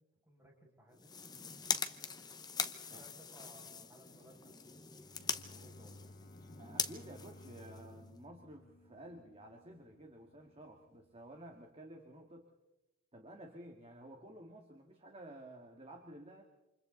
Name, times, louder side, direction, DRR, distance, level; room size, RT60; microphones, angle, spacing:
voice 1, 0.0-1.6 2.9-4.5 4.8-4.9 5.2-6.1, equal, 10° right, -2 dB, 6.6 m, -61 dB
sound 1, 0.9-8.2, left 6 dB, 20° left, 0.9 m, -42 dB
Bowed string instrument, 4.6-9.8, left 1 dB, 45° left, 1.4 m, -57 dB
Guitar, 5.1-11.7, left 2 dB, 65° left, 1.5 m, -65 dB
voice 2, 6.6-12.5 13.1-16.4, right 1 dB, 25° right, 2 dB, 2.2 m, -53 dB
28.5 x 27.0 x 4.0 m, 0.98 s
head